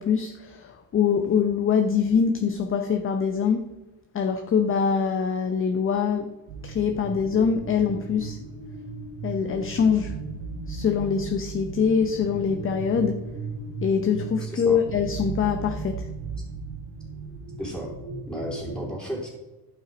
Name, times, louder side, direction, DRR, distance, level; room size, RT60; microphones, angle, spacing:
voice 1, 0.0-3.7 4.1-6.3 6.6-8.4 9.2-10.1 10.7-13.2 13.8-16.1, left 6 dB, 30° left, 5 dB, 0.8 m, -24 dB
sound 1, 6.5-18.8, right 4 dB, 55° right, 2.5 m, -36 dB
voice 2, 14.4-14.8 17.6-17.9 18.3-19.3, equal, ahead, -3 dB, 3.7 m, -33 dB
11.5 x 5.6 x 5.2 m, 1.1 s
cardioid pair, 120°, 43 cm